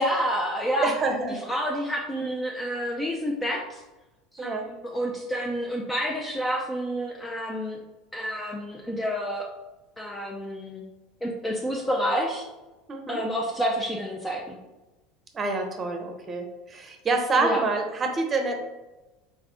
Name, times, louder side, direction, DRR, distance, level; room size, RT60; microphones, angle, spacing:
voice 1, 0.0-0.9 1.3-3.8 4.3-7.8 8.1-9.5 10.0-10.8 11.2-12.5 13.1-14.6 17.4-17.6, equal, 10° left, -1 dB, 0.6 m, -29 dB
voice 2, 0.8-1.4 4.4-4.6 12.9-13.2 15.3-18.6, right 3 dB, 25° right, 4 dB, 0.8 m, -27 dB
4.2 x 3.6 x 3.5 m, 1.1 s
figure-of-eight pair, 70°, 0 cm